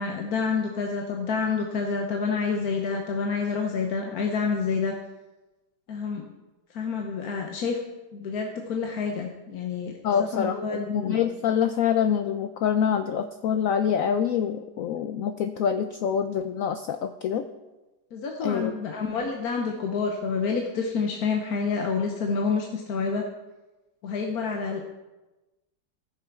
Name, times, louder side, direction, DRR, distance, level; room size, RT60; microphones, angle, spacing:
voice 1, 0.0-4.9 5.9-6.3 6.7-7.8 8.1-9.9 10.2-11.2 18.1-23.2 24.0-24.8, left 5 dB, 60° left, 2 dB, 1.3 m, -28 dB
voice 2, 10.0-17.4 18.4-18.7, left 8 dB, 80° left, 8 dB, 0.7 m, -26 dB
15.0 x 6.8 x 4.6 m, 1.1 s
omnidirectional pair, 2.0 m